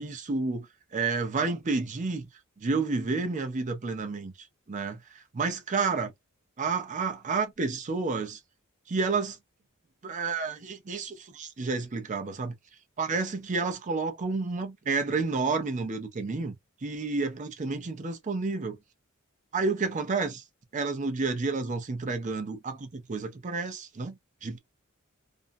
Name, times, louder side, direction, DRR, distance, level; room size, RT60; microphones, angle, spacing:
voice 1, 0.0-2.3 2.6-6.1 6.6-8.4 8.9-9.4 10.0-12.5 13.0-16.5 16.8-18.8 19.5-20.4 20.7-24.6, right 4 dB, 35° right, 0.5 m, -30 dB
2.5 x 2.1 x 2.5 m
head